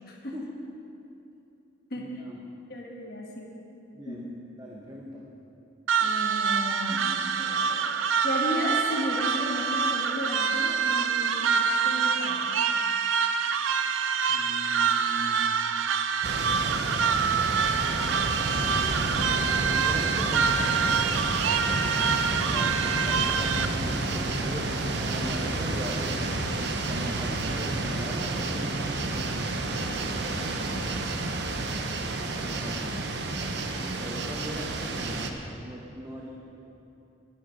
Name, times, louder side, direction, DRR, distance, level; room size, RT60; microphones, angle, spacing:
voice 1, 0.1-0.4 1.9-2.2 2.7-3.5 4.0-4.3 6.0-7.9 8.2-12.6 32.7-33.7, left 1 dB, 50° left, -3 dB, 1.4 m, -35 dB
voice 2, 2.0-2.4 3.9-4.2 4.6-5.2 14.3-15.6 17.9-20.6 22.3-30.9 32.4-32.9 33.7-36.3, equal, 20° right, -2 dB, 0.8 m, -40 dB
sound 1, 5.9-23.7, right 6 dB, 80° right, 0.5 m, -26 dB
sound 2, 16.2-35.3, right 2 dB, 60° right, 0.8 m, -30 dB
12.0 x 10.5 x 5.1 m, 2.9 s
head